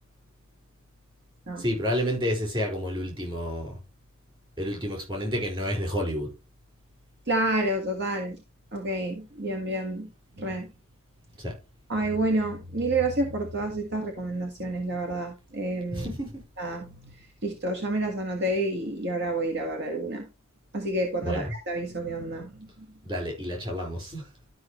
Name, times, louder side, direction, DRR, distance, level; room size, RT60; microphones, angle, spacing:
voice 1, 1.6-3.7 4.6-6.3 11.4-11.6 15.9-16.3 21.2-21.5 23.0-24.3, equal, 25° right, 4.8 m, -30 dB
voice 2, 7.3-8.4 8.7-10.1 10.4-10.7 11.9-16.1 16.6-20.3 20.7-22.9, right 2 dB, 55° right, 1.7 m, -29 dB
12.5 x 5.6 x 3.1 m
head